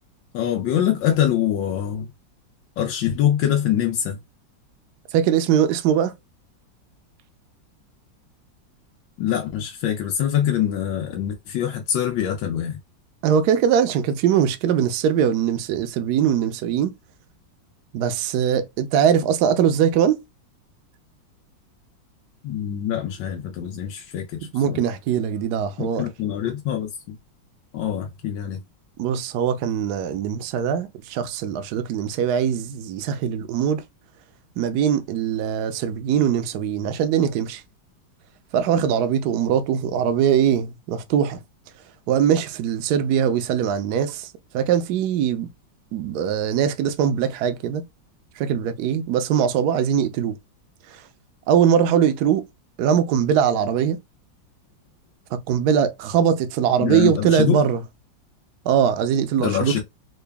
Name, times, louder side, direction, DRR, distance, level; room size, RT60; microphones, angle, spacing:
voice 1, 0.3-2.1 2.8-4.2 9.2-12.8 22.4-24.8 25.8-27.2 27.7-28.6 56.8-57.6 59.4-59.8, left 10 dB, 85° left, 1.5 m, -24 dB
voice 2, 5.1-6.1 13.2-16.9 17.9-20.2 24.5-26.1 29.0-33.8 34.6-37.6 38.5-41.4 42.1-45.5 45.9-47.8 48.4-50.3 50.9-51.0 51.5-52.4 52.8-54.0 55.3-57.8 58.6-59.8, right 8 dB, 70° right, 1.0 m, -21 dB
3.8 x 2.3 x 3.4 m
omnidirectional pair, 2.0 m